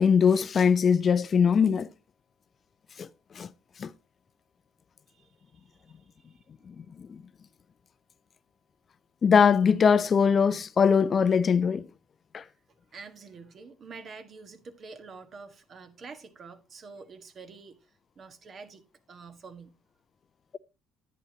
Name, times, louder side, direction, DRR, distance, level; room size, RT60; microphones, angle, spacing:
voice 1, 0.0-1.9 3.0-3.1 3.4-3.5 3.8-3.9 6.7-7.2 9.2-11.9 12.3-12.4, left 6 dB, 45° left, 0.5 m, -22 dB
voice 2, 5.1-6.4 12.9-18.8 19.1-19.7, right 4 dB, 45° right, 1.5 m, -47 dB
10.5 x 9.2 x 2.9 m
hypercardioid pair, 65°, 0 cm